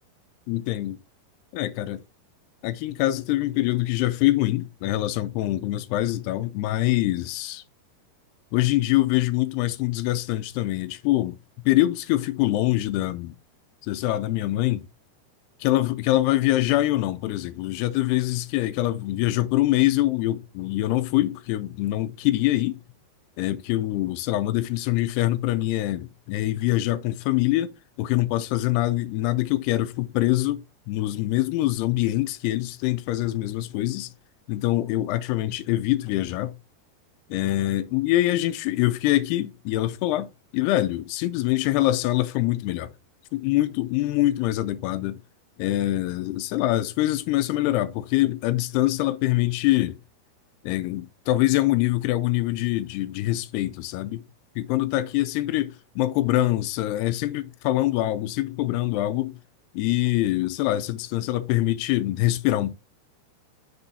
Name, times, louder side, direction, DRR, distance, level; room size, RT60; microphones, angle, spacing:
voice 1, 0.5-1.0 1.5-2.0 2.6-7.6 8.5-11.4 11.7-13.4 13.8-14.9 15.6-22.8 23.4-34.1 34.5-36.6 37.3-42.9 43.3-45.2 45.6-50.0 50.6-54.3 54.6-59.4 59.7-62.7, left 16 dB, 85° left, 2.6 m, -24 dB
6.3 x 5.3 x 4.0 m
omnidirectional pair, 4.8 m